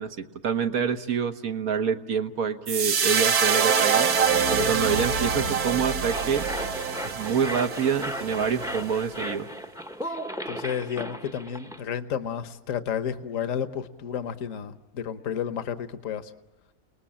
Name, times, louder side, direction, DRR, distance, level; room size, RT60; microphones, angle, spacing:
voice 1, 0.0-4.1 4.5-6.5 7.0-9.5, right 7 dB, 75° right, 7 dB, 1.6 m, -27 dB
sound 1, 2.7-9.1, right 6 dB, 90° right, 1.8 m, -25 dB
sound 2, 5.7-11.8, equal, 5° right, 0.7 m, -36 dB
voice 2, 10.5-16.3, left 8 dB, 65° left, 11 dB, 1.4 m, -31 dB
29.5 x 19.5 x 8.7 m, 1.1 s
omnidirectional pair, 1.5 m